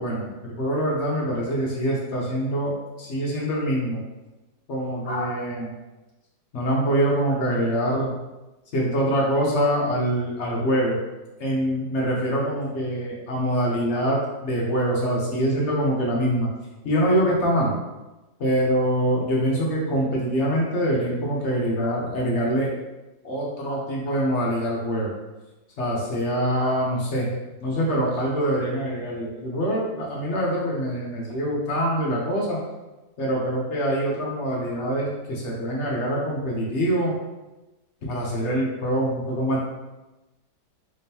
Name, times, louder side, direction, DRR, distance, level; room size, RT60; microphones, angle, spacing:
voice 1, 0.0-4.0 4.7-5.7 6.5-8.1 8.7-11.0 11.4-16.5 16.8-17.7 18.4-22.7 23.2-25.1 25.8-27.3 27.6-32.6 33.2-37.1 38.0-39.6, equal, 55° left, -3 dB, 0.8 m, -24 dB
3.5 x 3.4 x 2.8 m, 1.1 s
omnidirectional pair, 2.0 m